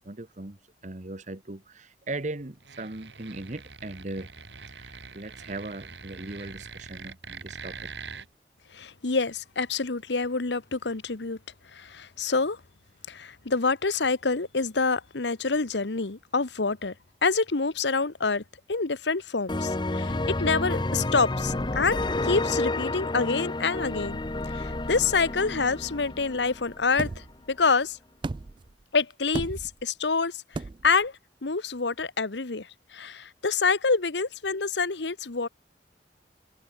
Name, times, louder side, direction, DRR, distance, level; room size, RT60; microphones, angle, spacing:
voice 1, 0.0-4.3 4.7-7.9, right 2 dB, 45° right, 1.4 m, -38 dB
sound 1, 2.6-8.3, right 5 dB, 80° right, 3.2 m, -43 dB
voice 2, 8.7-11.4 11.7-12.6 13.1-16.9 17.2-18.4 18.7-24.2 24.5-27.1 27.5-28.0 28.9-30.4 30.8-31.1 31.4-35.5, left 4 dB, 80° left, 1.2 m, -27 dB
sound 2, 19.5-27.1, left 2 dB, 25° left, 0.8 m, -30 dB
sound 3, 27.0-27.4 28.2-28.7 29.3-29.8 30.5-31.0, right 3 dB, 25° right, 0.3 m, -34 dB
head